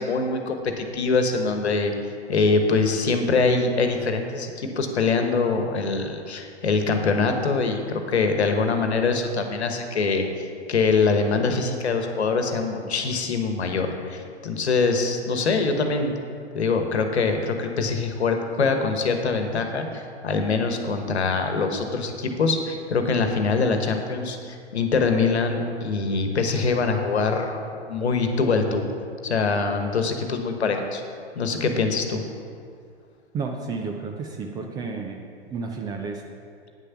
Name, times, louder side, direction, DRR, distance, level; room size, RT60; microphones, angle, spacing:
voice 1, 0.0-1.9 2.3-16.2 16.5-28.8 29.2-31.0 31.3-32.2, left 4 dB, 70° left, 5 dB, 1.2 m, -24 dB
voice 2, 33.3-35.2 35.5-36.2, right 4 dB, 10° right, 2 dB, 0.4 m, -31 dB
9.2 x 6.7 x 5.7 m, 2.3 s
figure-of-eight pair, 105°, 34 cm